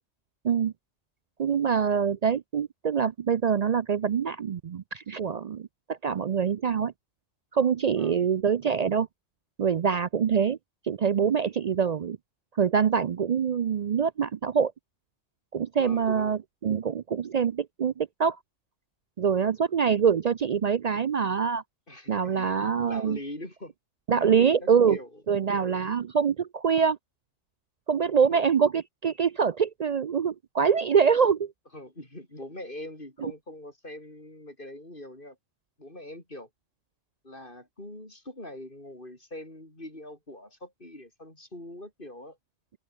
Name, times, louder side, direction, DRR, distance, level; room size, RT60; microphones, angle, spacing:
voice 1, 1.4-6.9 7.5-9.1 9.6-10.6 10.8-12.2 12.6-14.7 15.5-18.4 19.2-21.6 22.1-23.2 24.1-25.0 25.3-27.0 27.9-31.5, right 7 dB, 65° right, 0.4 m, -25 dB
voice 2, 8.0-8.3 15.8-16.4 21.9-22.6 22.8-23.7 24.2-25.2 28.0-28.6 31.7-35.4 35.8-36.5 37.2-42.4, left 1 dB, 45° left, 6.8 m, -43 dB
omnidirectional pair, 1.3 m